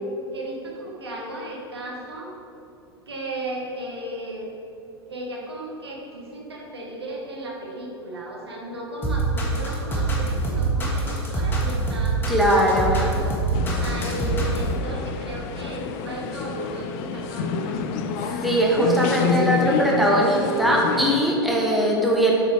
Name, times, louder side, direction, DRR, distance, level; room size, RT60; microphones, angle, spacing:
voice 1, 0.3-2.3 3.1-4.5 5.1-13.4 13.8-17.8, right 1 dB, 70° right, -2 dB, 1.5 m, -35 dB
sound 1, 9.0-14.7, right 3 dB, 15° left, 1.4 m, -25 dB
voice 2, 12.3-13.0 18.4-22.3, equal, ahead, -3 dB, 0.9 m, -20 dB
sound 2, 13.5-21.2, left 6 dB, 40° left, 0.5 m, -28 dB
7.8 x 4.6 x 4.9 m, 2.8 s
figure-of-eight pair, 95°, 14 cm